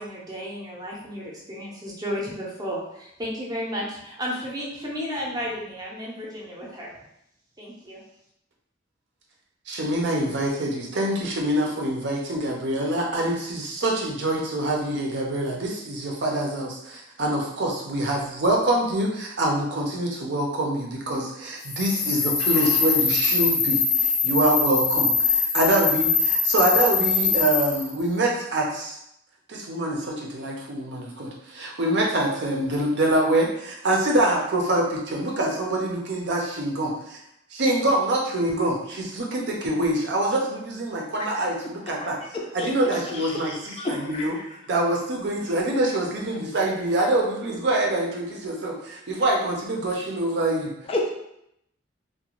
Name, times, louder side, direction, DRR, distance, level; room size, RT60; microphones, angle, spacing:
voice 1, 0.0-6.9 7.6-8.0, equal, 20° right, -3 dB, 0.6 m, -33 dB
voice 2, 9.7-29.0 29.5-37.2 37.5-42.2 42.5-44.4 44.7-50.7, right 1 dB, 60° right, -1 dB, 0.5 m, -25 dB
sound 1, 21.6-27.9, left 5 dB, 75° left, 0.8 m, -23 dB
voice 3, 43.1-44.3 50.9-51.1, left 2 dB, 30° left, 0 dB, 0.3 m, -30 dB
2.4 x 2.2 x 2.9 m, 0.78 s
head